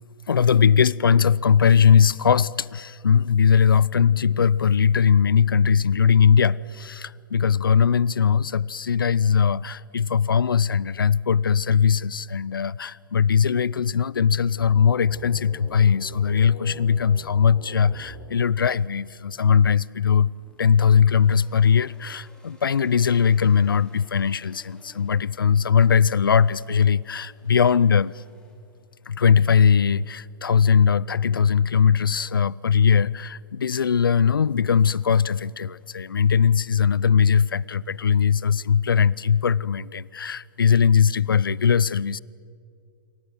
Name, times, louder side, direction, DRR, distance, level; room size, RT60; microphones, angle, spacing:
voice 1, 0.3-20.3 20.6-28.2 29.1-42.2, left 7 dB, 85° left, 0.6 m, -20 dB
sound 1, 1.7-3.2, right 3 dB, 85° right, 5.3 m, -61 dB
sound 2, 14.4-19.1, left 3 dB, 35° left, 5.1 m, -44 dB
sound 3, 20.1-39.3, left 2 dB, 5° left, 5.3 m, -60 dB
27.5 x 24.0 x 7.8 m
hypercardioid pair, 120°, 11 cm